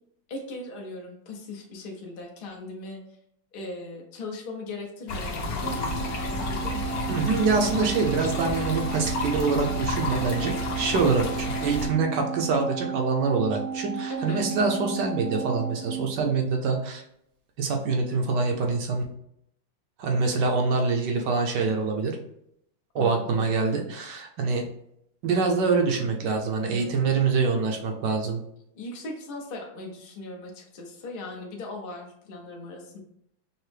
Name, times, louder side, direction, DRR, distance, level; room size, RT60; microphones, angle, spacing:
voice 1, 0.3-3.0 3.5-7.0 10.5-10.6 14.1-14.4 23.0-23.5 26.7-27.2 28.7-33.0, left 2 dB, 85° left, 0 dB, 0.4 m, -39 dB
sound 1, 5.1-11.9, left 2 dB, 65° left, 1.0 m, -31 dB
Organ, 5.6-16.9, right 7 dB, 55° right, 0.7 m, -34 dB
voice 2, 7.1-17.0 17.6-19.0 20.0-22.1 22.9-24.6 25.2-28.4, right 4 dB, 70° right, 2 dB, 1.2 m, -25 dB
5.5 x 2.0 x 3.2 m, 0.75 s
omnidirectional pair, 2.1 m